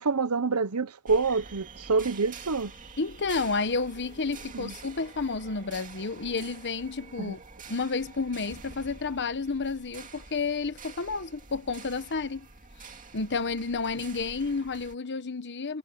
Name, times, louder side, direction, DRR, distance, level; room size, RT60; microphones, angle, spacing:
voice 1, 0.0-2.7 4.5-4.7 7.2-7.4, right 4 dB, 85° right, 1.0 m, -27 dB
sound 1, 1.1-14.9, right 4 dB, 35° right, 2.3 m, -47 dB
voice 2, 3.0-7.4 7.7-12.5 13.1-15.8, left 4 dB, 55° left, 1.2 m, -31 dB
head